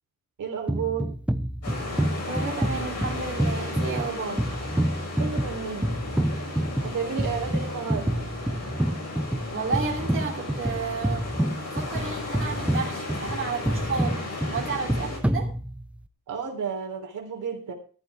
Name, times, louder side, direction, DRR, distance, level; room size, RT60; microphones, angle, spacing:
voice 1, 0.4-1.1 5.2-5.9 6.8-8.1 16.3-17.7, right 6 dB, 70° right, 2 dB, 3.5 m, -32 dB
sound 1, 0.7-16.1, right 1 dB, 5° right, 0.6 m, -28 dB
sound 2, 1.6-15.2, left 3 dB, 50° left, 6.6 m, -35 dB
voice 2, 2.3-4.5 9.5-11.3 11.6-15.5, right 5 dB, 40° right, -1 dB, 3.2 m, -32 dB
13.5 x 12.0 x 3.5 m, 0.40 s
wide cardioid pair, 160°, 32 cm